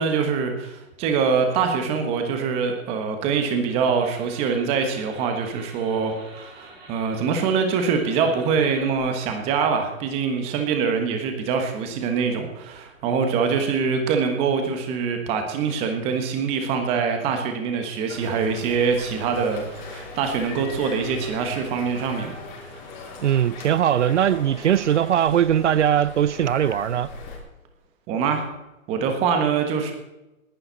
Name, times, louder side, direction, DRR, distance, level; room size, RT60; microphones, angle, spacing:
voice 1, 0.0-22.4 28.1-28.4 28.9-29.9, right 5 dB, 15° right, 1.4 m, -24 dB
sound 1, 3.6-9.0, right 2 dB, 30° right, 6.6 m, -46 dB
sound 2, 18.1-27.4, left 3 dB, 35° left, 3.7 m, -39 dB
voice 2, 23.2-27.1, right 10 dB, 60° right, 0.5 m, -20 dB
19.5 x 11.0 x 4.1 m
hypercardioid pair, 165°, 41 cm